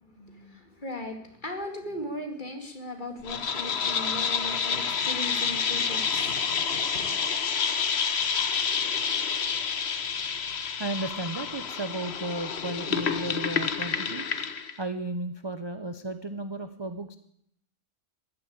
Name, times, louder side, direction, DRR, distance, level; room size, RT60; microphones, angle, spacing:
voice 1, 0.0-6.6 6.9-7.2, left 1 dB, 35° left, 5 dB, 2.5 m, -38 dB
sound 1, 3.3-14.8, left 6 dB, 55° left, 1.2 m, -29 dB
voice 2, 10.8-14.3 14.8-17.2, right 2 dB, 25° right, 10 dB, 0.6 m, -34 dB
14.5 x 11.5 x 8.7 m, 0.71 s
omnidirectional pair, 1.4 m